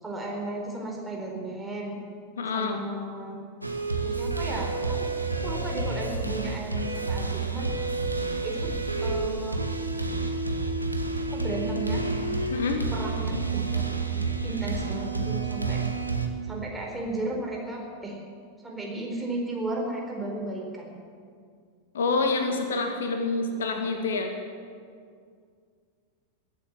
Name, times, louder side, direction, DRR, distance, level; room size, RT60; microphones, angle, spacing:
voice 1, 0.0-2.0 2.5-3.4 4.0-5.1 5.4-7.7 8.4-9.6 11.3-12.0 12.9-15.8 16.5-18.2 18.6-21.0, right 2 dB, 10° right, -1 dB, 4.4 m, -34 dB
voice 2, 2.4-2.8 12.5-12.8 21.9-24.3, left 3 dB, 65° left, 5 dB, 1.6 m, -27 dB
sound 1, 3.6-16.3, right 3 dB, 85° right, 1.4 m, -29 dB
22.0 x 8.7 x 7.5 m, 2.2 s
figure-of-eight pair, 90°, 0 cm